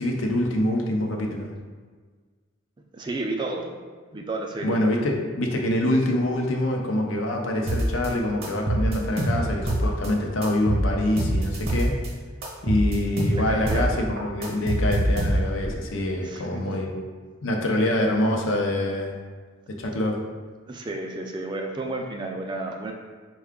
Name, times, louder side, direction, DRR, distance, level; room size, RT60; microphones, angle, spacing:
voice 1, 0.0-1.5 4.6-12.0 12.6-17.1 17.4-19.1 19.7-20.2, left 1 dB, 75° left, 1 dB, 0.6 m, -25 dB
voice 2, 2.9-3.7 4.1-4.8 13.3-14.0 16.2-16.8 20.7-22.9, right 2 dB, 20° right, 2 dB, 0.3 m, -31 dB
sound 1, 7.7-8.1 8.4-10.1 10.4-12.1 12.4-13.9 14.2-15.7, right 1 dB, 50° right, 0.8 m, -24 dB
4.5 x 2.3 x 3.5 m, 1.5 s
head